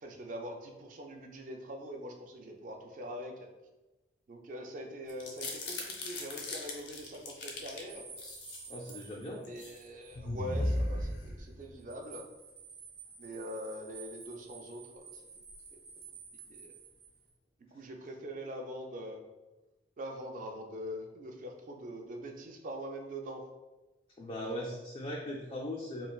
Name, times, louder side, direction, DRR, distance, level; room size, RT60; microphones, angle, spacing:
voice 1, 0.0-3.5 4.3-8.0 9.5-12.3 13.2-15.2 15.7-15.8 16.5-16.7 17.7-19.2 20.0-23.5 24.4-24.7, equal, 50° right, 3 dB, 0.4 m, -43 dB
sound 1, 5.1-7.8 8.2-9.0 9.4-9.8 10.1-11.7, left 1 dB, 85° left, 0.6 m, -36 dB
sound 2, 7.9-10.2 10.5-10.6 11.6-17.3, right 5 dB, 65° right, 0.9 m, -52 dB
voice 2, 8.7-9.5 24.2-26.1, equal, 30° left, -4 dB, 0.3 m, -39 dB
3.1 x 2.3 x 2.3 m, 1.1 s
head